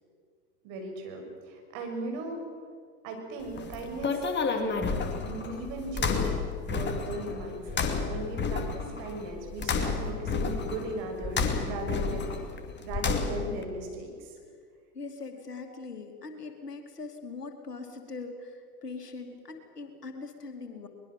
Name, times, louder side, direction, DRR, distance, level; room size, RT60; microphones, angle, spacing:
voice 1, 0.6-2.4 3.0-4.9 5.2-6.4 6.7-12.3 12.8-14.3, right 2 dB, 50° right, 3 dB, 6.3 m, -37 dB
sound 1, 3.4-13.6, left 4 dB, 25° left, 2.6 m, -31 dB
voice 2, 14.9-20.9, left 4 dB, 85° left, 5 dB, 2.9 m, -41 dB
22.5 x 21.5 x 7.6 m, 2.1 s
figure-of-eight pair, 90°, 46 cm